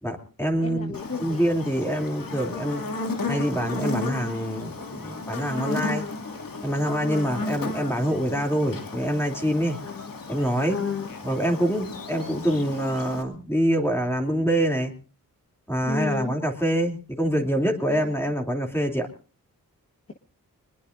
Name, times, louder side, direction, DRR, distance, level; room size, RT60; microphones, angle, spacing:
voice 1, 0.0-2.8 3.3-6.0 6.6-9.8 10.3-10.8 11.2-14.9 15.7-19.1, equal, 5° left, 2 dB, 2.9 m, -25 dB
voice 2, 0.6-1.5 7.0-7.3 9.8-10.1 10.7-11.1 15.8-16.3, left 4 dB, 40° left, 4 dB, 1.4 m, -32 dB
Buzz, 0.9-13.2, left 3 dB, 65° left, 2.4 m, -34 dB
23.5 x 21.0 x 2.6 m, 0.37 s
wide cardioid pair, 80°, 36 cm